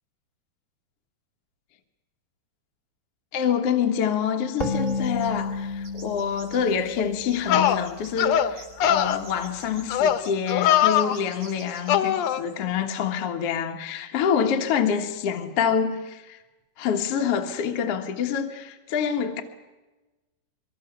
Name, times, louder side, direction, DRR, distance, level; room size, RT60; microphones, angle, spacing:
voice 1, 3.3-16.4 16.8-19.4, left 7 dB, 55° left, 1.9 m, -26 dB
sound 1, 4.6-8.1, left 3 dB, 20° left, 2.0 m, -31 dB
sound 2, 4.6-5.4 5.8-7.0 7.3-8.1 8.5-12.2 12.5-12.6, right 3 dB, 65° right, 8.8 m, -46 dB
sound 3, 7.0-7.1 7.5-7.8 8.2-8.5 8.8-9.2 9.9-10.2 10.5-11.2 11.9-12.4, left 10 dB, 80° left, 1.5 m, -21 dB
24.5 x 23.5 x 7.1 m
omnidirectional pair, 4.4 m